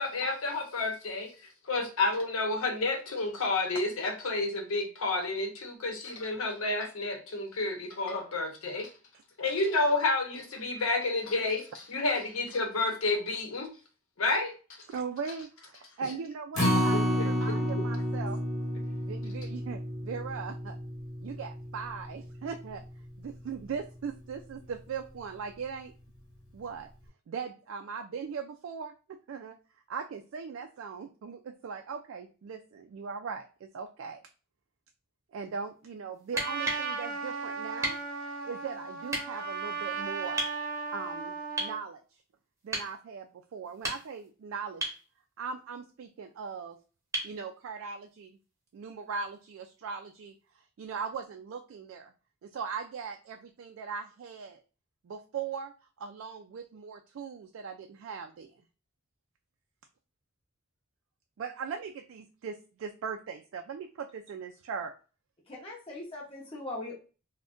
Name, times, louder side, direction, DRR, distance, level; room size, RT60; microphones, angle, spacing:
voice 1, 0.0-1.3 1.6-8.9 9.4-13.7 14.2-14.5 17.2-17.5, left 3 dB, 75° left, 3 dB, 0.8 m, -30 dB
voice 2, 14.9-18.4 19.0-20.8 21.2-22.8 23.2-25.9 26.5-26.9 27.3-29.6 29.9-34.2 35.3-38.0 38.4-40.4 40.9-42.0 42.6-44.8 45.4-46.8 47.2-48.4 48.7-50.3 50.8-52.1 52.4-54.6 55.0-55.7 56.0-58.5 61.4-64.9, right 6 dB, 65° right, 5 dB, 0.3 m, -39 dB
Acoustic guitar, 16.5-22.9 23.3-23.4 23.8-23.9, equal, 55° left, 1.1 m, -31 dB
sound 1, 36.2-36.9 37.8-38.0 39.1-39.3 40.4-40.6 41.6-41.8 42.7-42.9 43.7-44.3 44.8-45.0 47.1-47.4 49.2-49.3, right 1 dB, 15° right, 0.8 m, -33 dB
Trumpet, 36.3-41.8, right 4 dB, 45° right, 0.7 m, -36 dB
voice 3, 65.5-66.9, left 2 dB, 25° left, -3 dB, 0.7 m, -40 dB
2.5 x 2.1 x 3.5 m, 0.35 s
head